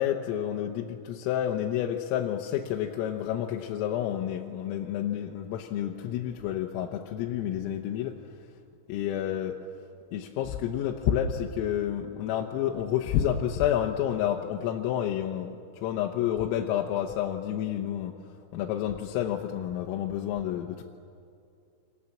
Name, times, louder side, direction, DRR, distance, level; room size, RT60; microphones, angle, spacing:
voice 1, 0.0-8.2 8.9-9.6 10.1-20.8, left 10 dB, 85° left, 1 dB, 3.7 m, -29 dB
28.0 x 26.0 x 7.4 m, 2.4 s
omnidirectional pair, 5.9 m